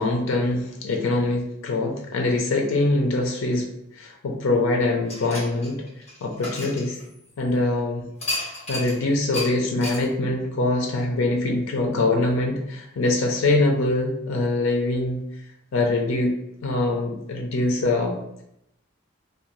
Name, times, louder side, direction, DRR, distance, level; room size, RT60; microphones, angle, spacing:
voice 1, 0.0-3.7 3.9-5.8 6.2-7.0 7.4-8.1 8.7-15.2 15.7-16.4 16.6-18.1, left 2 dB, 85° left, 1 dB, 0.4 m, -23 dB
sound 1, 5.1-7.5 8.2-9.0 9.3-9.5 9.8-10.0, left 1 dB, 35° left, 1.2 m, -32 dB
2.6 x 2.2 x 3.0 m, 0.79 s
head